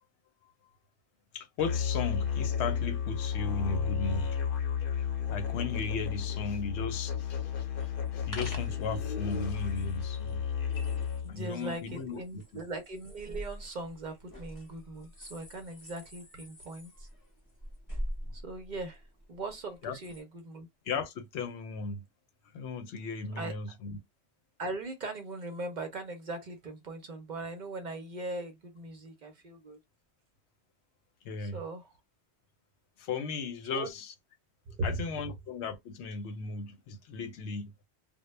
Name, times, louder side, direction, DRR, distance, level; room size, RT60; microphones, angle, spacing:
voice 1, 1.3-4.3 5.3-7.7 8.1-10.4 11.3-12.4 19.8-20.0 20.9-22.0 22.5-24.0 31.2-31.6 33.0-34.1 34.8-37.7, left 4 dB, 90° left, 0.9 m, -36 dB
Musical instrument, 1.6-11.4, left 8 dB, 60° left, 0.8 m, -32 dB
sound 1, 7.8-20.2, equal, 20° left, 0.7 m, -45 dB
voice 2, 11.2-17.1 18.3-19.0 19.3-20.7 23.3-23.8 24.6-29.8 31.4-31.9 33.7-33.9 34.7-35.0, right 2 dB, 55° right, 0.6 m, -39 dB
2.1 x 2.0 x 3.1 m
omnidirectional pair, 1.1 m